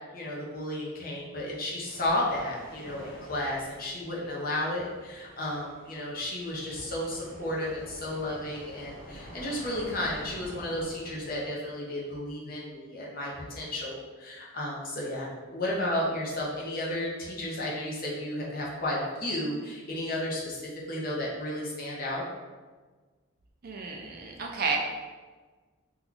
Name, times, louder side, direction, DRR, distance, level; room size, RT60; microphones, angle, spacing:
voice 1, 0.1-22.2, left 1 dB, 40° left, -4 dB, 0.7 m, -33 dB
sound 1, 1.8-11.4, equal, 20° left, 1.5 m, -48 dB
voice 2, 23.6-24.8, right 4 dB, 45° right, 0 dB, 0.4 m, -31 dB
2.9 x 2.3 x 3.8 m, 1.4 s
head